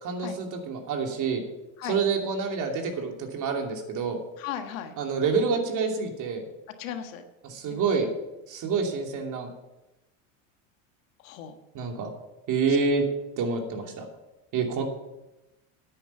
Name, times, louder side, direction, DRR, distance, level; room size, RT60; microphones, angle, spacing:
voice 1, 0.0-1.4 1.9-4.2 5.0-6.5 7.4-8.1 8.5-9.5 11.7-12.1 12.5-13.1 13.4-14.1 14.5-14.8, right 5 dB, 50° right, 3 dB, 2.7 m, -27 dB
voice 2, 4.4-5.0 6.8-7.2 7.7-8.1 11.2-11.5, left 9 dB, 85° left, 7 dB, 1.5 m, -36 dB
10.5 x 9.7 x 5.8 m, 0.97 s
supercardioid pair, 105°, 39 cm